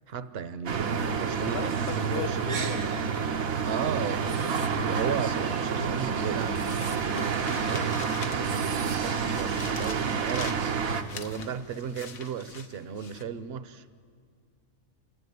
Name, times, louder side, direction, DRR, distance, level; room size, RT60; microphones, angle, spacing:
voice 1, 0.1-2.4 3.6-7.9 8.4-13.8, right 7 dB, 55° right, 13 dB, 0.9 m, -35 dB
sound 1, 0.7-11.0, right 6 dB, 90° right, 1.5 m, -29 dB
voice 2, 1.0-2.8 4.6-5.2, left 7 dB, 50° left, 12 dB, 1.0 m, -38 dB
sound 2, 4.2-4.7 6.3-7.0 8.4-9.0, right 8 dB, 70° right, 1.2 m, -44 dB
sound 3, 6.4-8.6 8.9-13.2, left 6 dB, 90° left, 1.5 m, -44 dB
28.0 x 11.5 x 9.5 m, 2.1 s
omnidirectional pair, 1.4 m